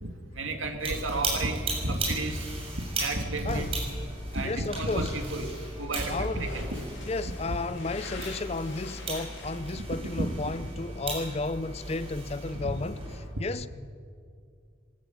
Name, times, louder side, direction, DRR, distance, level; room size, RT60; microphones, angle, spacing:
voice 1, 0.0-2.5 3.0-3.7 4.3-5.5 5.8-6.8 7.4-7.6 9.7-9.8 10.2-10.3 12.6-12.7 13.3-13.5, right 2 dB, 85° right, 2.3 m, -32 dB
sound 1, 0.8-13.2, right 2 dB, 30° right, 6.8 m, -36 dB
sound 2, 1.4-11.3, left 3 dB, 70° left, 3.8 m, -49 dB
voice 2, 4.2-5.1 6.1-6.5 7.1-13.0 13.4-13.7, left 3 dB, 30° left, 0.5 m, -33 dB
22.0 x 14.0 x 9.3 m
head